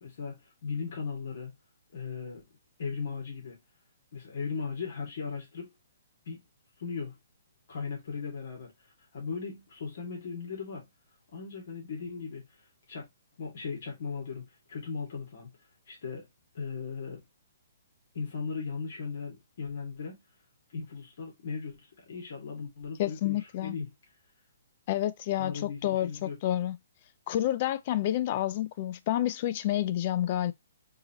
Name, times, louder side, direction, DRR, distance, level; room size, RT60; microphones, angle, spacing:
voice 1, 0.0-1.5 1.9-2.5 2.8-3.6 4.1-5.7 6.3-6.4 6.8-7.1 7.7-8.7 9.1-10.9 11.3-12.5 12.9-13.1 13.4-15.5 15.9-16.3 16.5-17.2 18.1-20.2 20.7-21.8 22.1-23.9 25.4-26.4, left 5 dB, 60° left, 2.1 m, -37 dB
voice 2, 23.0-23.8 24.9-26.8 27.3-30.5, left 13 dB, 35° left, 0.4 m, -29 dB
4.7 x 2.8 x 2.9 m
hypercardioid pair, 165°, 0 cm